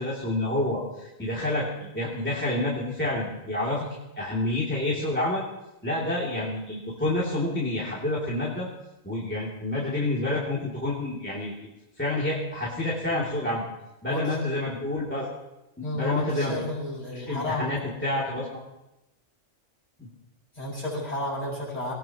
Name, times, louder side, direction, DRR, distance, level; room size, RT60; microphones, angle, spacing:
voice 1, 0.0-3.9 4.2-5.4 5.8-8.7 9.0-11.7 12.0-13.6 14.0-15.3 15.8-16.6 17.3-18.6 20.0-20.1, left 1 dB, 10° left, -6 dB, 2.7 m, -28 dB
voice 2, 14.1-14.4 15.8-17.7 20.5-21.9, left 1 dB, 30° left, -4 dB, 6.7 m, -32 dB
21.0 x 19.0 x 3.0 m, 0.94 s
omnidirectional pair, 1.4 m